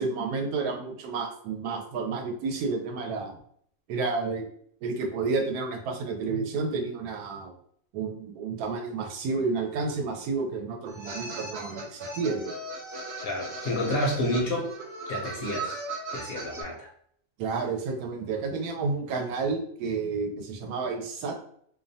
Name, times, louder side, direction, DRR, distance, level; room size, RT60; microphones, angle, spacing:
voice 1, 0.0-3.4 3.9-4.5 4.8-7.5 7.9-12.5 14.2-14.3 17.4-21.4, right 4 dB, 90° right, 4 dB, 1.1 m, -30 dB
sound 1, 10.9-16.6, right 2 dB, 55° right, 0.8 m, -37 dB
voice 2, 13.2-14.7 15.1-15.8 16.1-16.9, left 1 dB, 60° left, -1 dB, 0.6 m, -29 dB
2.6 x 2.1 x 2.6 m, 0.64 s
omnidirectional pair, 1.5 m